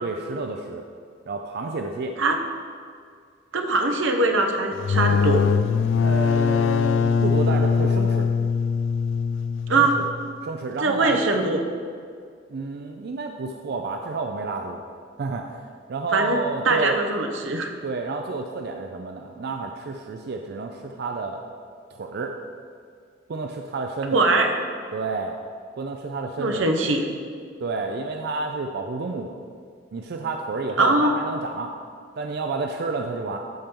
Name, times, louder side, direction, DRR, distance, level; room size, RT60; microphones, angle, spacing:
voice 1, 0.0-0.9 1.3-2.2 6.0-8.3 9.8-10.1 10.4-11.2 12.5-14.8 15.2-17.0 17.8-21.4 21.9-22.4 23.3-24.2 24.9-25.4 25.8-26.7 27.6-29.4 29.9-31.7 32.2-33.4, right 3 dB, 55° right, 4 dB, 0.4 m, -30 dB
voice 2, 3.5-5.6 9.7-10.0 10.8-11.6 16.1-17.7 24.1-24.6 26.4-27.0 30.8-31.1, right 2 dB, 90° right, 4 dB, 0.8 m, -22 dB
sound 1, 4.7-10.3, left 6 dB, 80° left, 0.3 m, -22 dB
12.0 x 4.4 x 3.7 m, 2.1 s
head